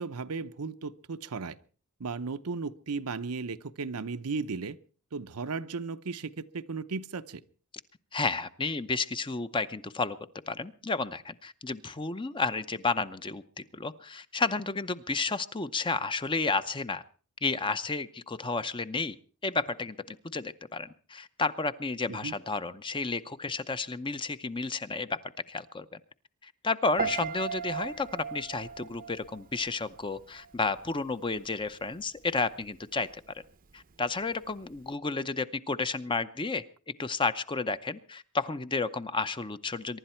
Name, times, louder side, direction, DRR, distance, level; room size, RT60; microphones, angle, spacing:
voice 1, 0.0-1.6 2.0-4.8 5.1-7.4 22.1-22.3, right 4 dB, 80° right, 11 dB, 0.7 m, -35 dB
voice 2, 8.1-10.2 10.5-17.0 17.4-19.2 19.4-25.2 25.5-26.0 26.4-33.1 33.7-36.6 37.0-40.0, left 3 dB, 20° left, 12 dB, 0.7 m, -32 dB
Piano, 27.0-30.1 30.4-30.8, right 6 dB, 40° right, 0.7 m, -36 dB
24.0 x 11.5 x 4.4 m, 0.41 s
head